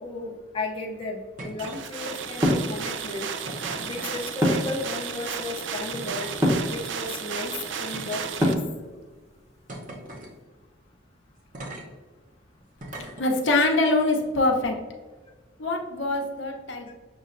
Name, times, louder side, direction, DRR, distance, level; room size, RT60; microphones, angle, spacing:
voice 1, 0.0-3.3 3.8-6.3 6.7-8.6 16.9-17.0, left 2 dB, 25° left, -1 dB, 0.6 m, -34 dB
sound 1, 1.4-1.8 2.0-2.5 3.5-4.2 5.2-5.4 5.9-6.4 7.1-7.2 7.9-8.8 9.7-10.3 11.5-11.8 12.8-13.3 14.3-14.5, right 1 dB, 40° right, 0.9 m, -39 dB
sound 2, 1.6-8.5, right 7 dB, 70° right, 0.4 m, -34 dB
sound 3, 2.4-2.7 4.4-4.8 6.4-6.7 8.4-8.8, equal, 15° right, 0.9 m, -21 dB
voice 2, 13.2-14.7 15.6-16.9, left 2 dB, 70° left, 1 dB, 0.8 m, -24 dB
6.4 x 3.1 x 2.5 m, 1.4 s
head